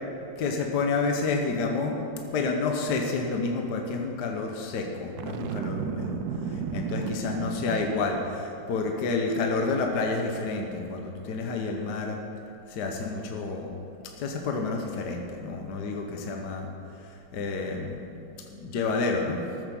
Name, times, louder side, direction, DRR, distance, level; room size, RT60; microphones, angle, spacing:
voice 1, 0.4-1.9 2.3-6.2 6.7-12.2 12.7-13.7 14.2-16.7 17.0-19.4, left 4 dB, 60° left, 2 dB, 1.5 m, -29 dB
Boom, 5.2-8.4, right 7 dB, 70° right, 1.0 m, -33 dB
14.0 x 7.2 x 6.9 m, 2.8 s
omnidirectional pair, 2.1 m